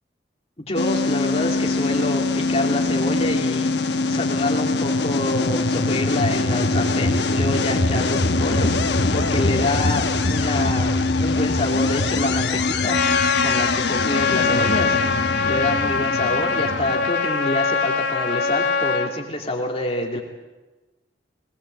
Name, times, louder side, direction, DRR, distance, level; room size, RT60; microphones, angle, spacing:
voice 1, 0.6-3.7 4.1-15.0 15.4-20.2, left 1 dB, 35° left, 0 dB, 2.6 m, -27 dB
sound 1, 0.8-17.1, left 3 dB, 70° left, 1.1 m, -23 dB
Trumpet, 12.9-19.1, left 4 dB, 90° left, 2.3 m, -23 dB
21.0 x 19.5 x 8.0 m, 1.2 s
head